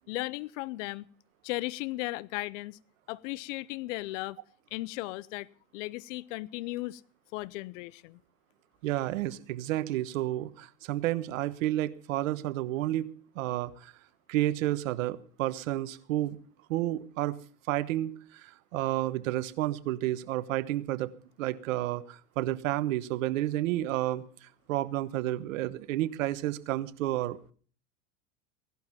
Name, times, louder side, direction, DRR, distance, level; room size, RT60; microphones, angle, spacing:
voice 1, 0.1-1.0 1.4-2.8 3.1-4.4 4.7-5.5 5.7-7.0 7.3-8.2, left 20 dB, 70° left, 21 dB, 0.7 m, -36 dB
voice 2, 8.8-13.9 14.3-16.4 16.7-17.3 17.7-21.1 21.4-27.4, right 15 dB, 75° right, 15 dB, 1.2 m, -31 dB
17.0 x 12.0 x 5.8 m, 0.43 s
hypercardioid pair, 105°, 39 cm